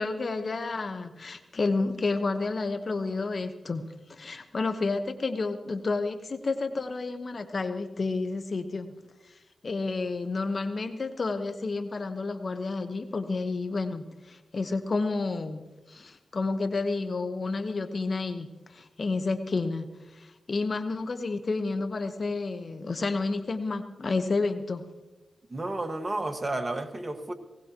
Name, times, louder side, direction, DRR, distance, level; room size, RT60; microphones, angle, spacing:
voice 1, 0.0-8.9 9.6-24.9, left 3 dB, 55° left, 9 dB, 1.2 m, -30 dB
voice 2, 25.5-27.3, right 2 dB, 30° right, 7 dB, 1.7 m, -31 dB
19.5 x 18.5 x 3.0 m, 1.1 s
supercardioid pair, 40°, 0 cm